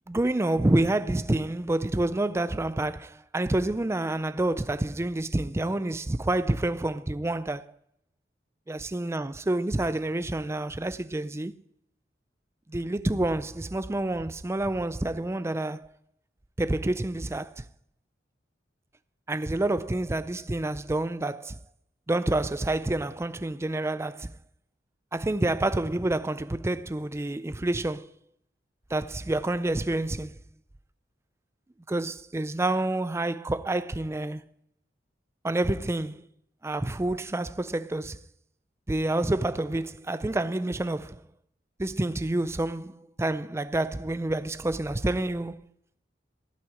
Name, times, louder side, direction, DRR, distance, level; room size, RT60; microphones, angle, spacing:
voice 1, 0.1-7.7 8.7-11.5 12.7-15.9 16.6-17.6 19.3-21.6 22.1-24.3 25.1-28.1 28.9-30.3 31.9-34.4 35.4-36.2 36.6-38.2 38.9-41.2 41.8-45.6, right 2 dB, 15° right, 0.4 m, -28 dB
15.0 x 6.0 x 8.6 m
head